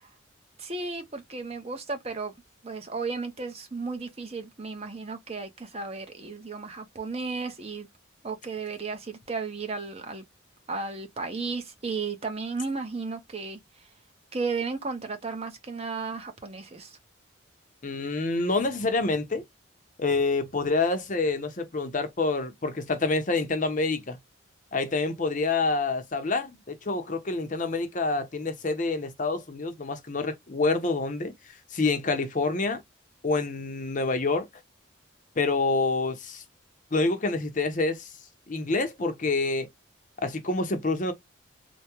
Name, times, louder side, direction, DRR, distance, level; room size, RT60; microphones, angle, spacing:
voice 1, 0.6-2.3 2.6-7.9 8.2-10.2 10.7-13.6 14.3-17.0, right 4 dB, 30° right, 0.8 m, -34 dB
voice 2, 17.8-19.4 20.0-24.2 24.7-31.3 31.7-32.8 33.2-34.5 35.4-36.4 36.9-38.1 38.5-39.7 40.2-41.1, left 3 dB, 40° left, 0.7 m, -27 dB
3.4 x 2.2 x 2.8 m
head